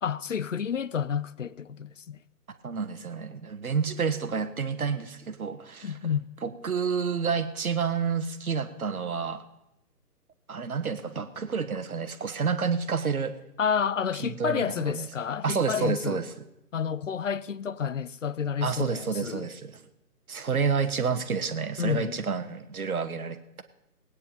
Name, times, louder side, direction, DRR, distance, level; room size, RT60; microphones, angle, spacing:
voice 1, 0.0-2.2 5.8-6.3 13.6-16.2 16.7-19.5 21.8-22.2, left 7 dB, 50° left, 0.5 m, -30 dB
voice 2, 2.6-5.9 6.4-9.4 10.5-13.3 14.2-15.1 15.4-16.2 18.6-19.8 20.3-23.6, right 6 dB, 60° right, 1.5 m, -29 dB
18.5 x 9.6 x 5.3 m
figure-of-eight pair, 145°, 48 cm